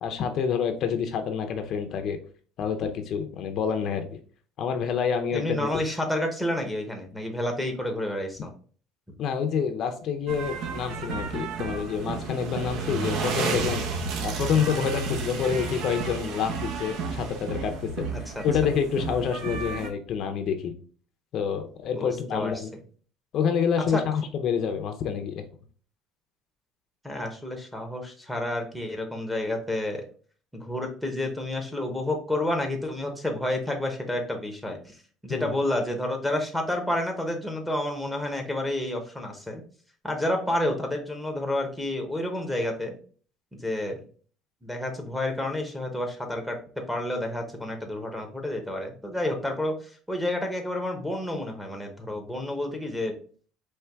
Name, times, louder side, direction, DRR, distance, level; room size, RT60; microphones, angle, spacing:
voice 1, 0.0-2.2 2.6-4.2 4.6-5.7 9.2-13.8 14.2-18.1 18.4-20.7 21.3-22.7 23.3-25.4 35.3-35.5, left 7 dB, 50° left, 6 dB, 0.6 m, -27 dB
voice 2, 5.3-8.5 18.1-18.4 22.0-22.7 23.9-24.0 27.0-30.0 30.6-34.9 35.2-39.6 40.0-43.0 43.6-44.0 44.6-46.6 46.9-53.1, left 1 dB, ahead, 2 dB, 0.9 m, -30 dB
sound 1, 10.3-19.9, right 4 dB, 60° right, 0.8 m, -32 dB
4.5 x 3.1 x 3.4 m, 0.43 s
cardioid pair, 150°, 0 cm